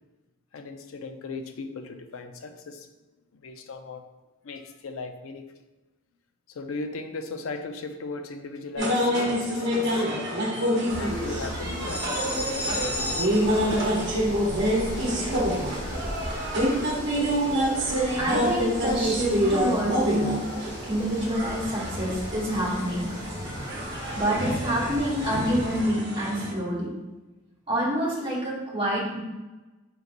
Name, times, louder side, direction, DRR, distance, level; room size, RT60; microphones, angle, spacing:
voice 1, 0.5-2.9 3.3-4.0 4.4-5.4 6.5-10.1 11.0-13.8, left 3 dB, 75° left, 7 dB, 0.4 m, -37 dB
sound 1, 8.8-26.5, equal, 55° right, 0.9 m, -27 dB
sound 2, 10.9-25.8, equal, 55° left, 1.1 m, -37 dB
voice 2, 18.2-20.3 20.8-23.5 24.1-26.9 27.7-29.2, equal, 25° right, -6 dB, 1.3 m, -27 dB
4.6 x 3.9 x 2.5 m, 1.1 s
head